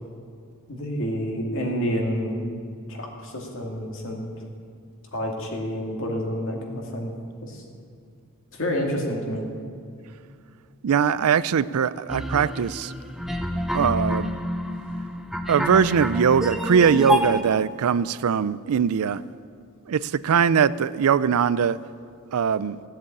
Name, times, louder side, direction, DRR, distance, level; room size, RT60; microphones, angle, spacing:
voice 1, 0.7-2.4 2.9-4.3 5.1-7.1 7.4-7.6 8.5-9.5, equal, 60° left, 0 dB, 2.5 m, -28 dB
voice 2, 10.8-12.9 13.7-14.4 15.5-19.2 19.9-21.8 22.3-22.8, right 7 dB, 75° right, 17 dB, 0.4 m, -21 dB
sound 1, 12.1-17.4, left 1 dB, ahead, 0.6 m, -28 dB
16.0 x 7.6 x 8.5 m, 2.4 s
head